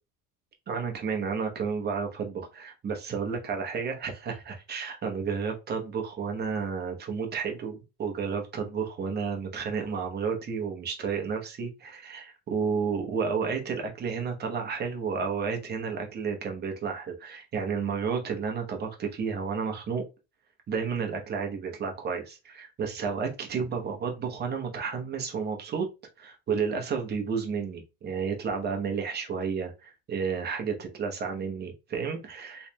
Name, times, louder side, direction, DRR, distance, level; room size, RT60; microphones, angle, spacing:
voice 1, 0.7-20.0 20.7-25.9 26.2-32.7, right 6 dB, 25° right, 2 dB, 0.8 m, -31 dB
3.3 x 3.1 x 2.8 m, 0.27 s
cardioid pair, 175°, 38 cm